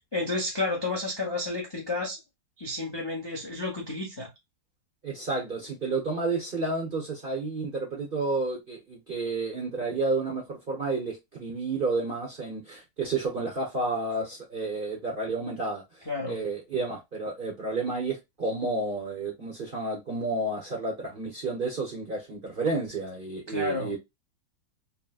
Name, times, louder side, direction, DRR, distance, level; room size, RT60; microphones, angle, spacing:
voice 1, 0.0-2.2 2.6-4.3 16.1-16.4 23.5-23.9, left 2 dB, 25° left, 0.5 m, -31 dB
voice 2, 5.0-15.8 16.3-24.0, right 3 dB, 40° right, 0.8 m, -31 dB
3.9 x 2.2 x 2.3 m
omnidirectional pair, 2.0 m